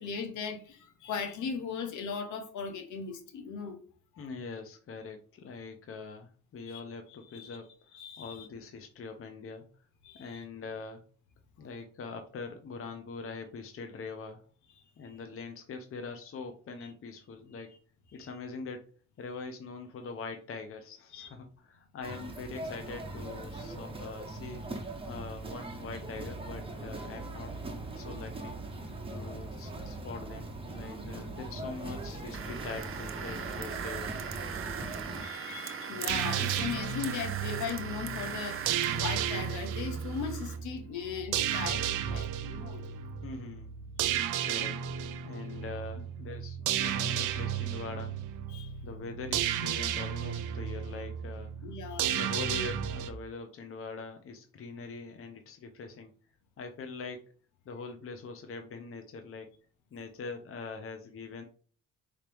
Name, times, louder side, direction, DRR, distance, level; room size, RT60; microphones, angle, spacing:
voice 1, 0.0-3.8 4.1-4.2 6.7-6.8 7.1-7.6 7.9-8.5 10.0-10.4 16.8-16.9 18.2-18.3 21.1-21.3 35.2-42.8 44.1-44.2 48.5-48.7 51.6-52.2, left 6 dB, 75° left, 1.1 m, -38 dB
voice 2, 4.2-7.7 8.2-9.7 10.2-11.1 11.6-14.4 15.0-17.7 18.1-18.8 19.2-24.6 25.0-27.5 28.0-28.6 29.1-34.1 43.2-43.7 44.4-44.8 45.2-48.1 48.8-51.7 52.0-56.1 56.6-57.3 57.7-59.5 59.9-61.4, left 4 dB, 45° left, 0.7 m, -43 dB
sound 1, 22.0-35.2, right 2 dB, 20° right, 1.0 m, -40 dB
sound 2, 32.3-40.6, right 8 dB, 45° right, 0.6 m, -40 dB
sound 3, 36.1-53.1, right 9 dB, 90° right, 0.6 m, -33 dB
4.8 x 3.0 x 3.4 m
cardioid pair, 90°, 30 cm